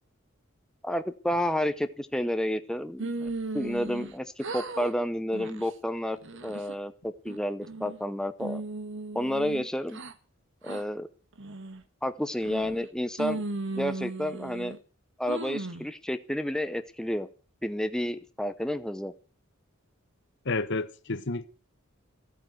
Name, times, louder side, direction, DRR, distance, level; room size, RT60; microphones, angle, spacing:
voice 1, 0.8-6.2 6.4-8.6 9.1-10.0 10.6-11.1 12.0-13.4 13.7-14.7 15.2-17.3 17.6-19.1, left 1 dB, 5° left, 0.7 m, -30 dB
sound 1, 3.0-4.1 4.4-4.9 5.3-5.7 6.2-6.7 7.3-8.0 8.4-10.1 10.6-10.8 11.4-11.8 12.4-12.9 13.2-14.8 15.3-15.9, right 2 dB, 65° right, 1.5 m, -36 dB
voice 2, 20.4-21.5, left 3 dB, 60° left, 1.1 m, -30 dB
14.5 x 9.0 x 7.9 m
head